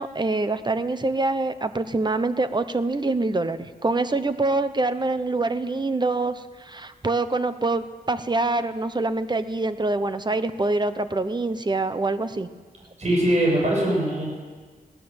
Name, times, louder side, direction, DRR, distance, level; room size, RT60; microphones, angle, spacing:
voice 1, 0.0-12.5, right 2 dB, 30° right, 11 dB, 1.0 m, -25 dB
voice 2, 13.0-14.2, right 1 dB, 45° right, -2 dB, 7.3 m, -21 dB
20.0 x 17.0 x 8.0 m, 1.5 s
wide cardioid pair, 120°, 16 cm